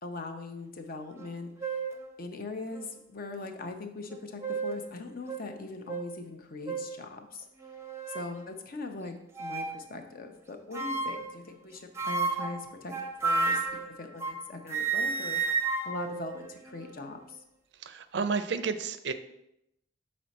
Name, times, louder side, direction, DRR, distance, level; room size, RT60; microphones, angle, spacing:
voice 1, 0.0-1.5 2.2-7.5 8.1-15.4 15.8-17.4, left 3 dB, 55° left, 6 dB, 0.7 m, -40 dB
sound 1, 1.2-1.3 1.6-2.0 2.7-2.8 4.1-4.9 5.3-5.4 5.9-6.1 6.7-6.9 7.6-8.3 9.3-9.8 10.7-11.3 12.0-14.4 14.7-17.0, right 4 dB, 15° right, 0.6 m, -32 dB
voice 2, 17.8-19.1, right 5 dB, 70° right, 11 dB, 0.4 m, -31 dB
6.1 x 4.3 x 4.1 m, 0.83 s
head